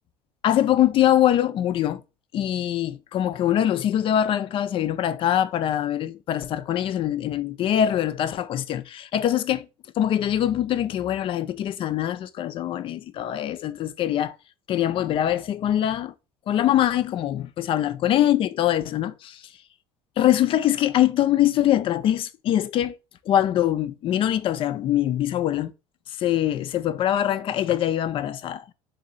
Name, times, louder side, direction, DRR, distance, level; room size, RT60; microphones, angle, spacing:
voice 1, 0.4-2.0 2.3-9.7 10.0-14.3 14.7-16.1 16.5-19.4 20.2-23.0 23.3-25.7 26.1-28.6, left 11 dB, 45° left, 0.4 m, -23 dB
3.1 x 2.7 x 3.8 m
supercardioid pair, 110°, 13 cm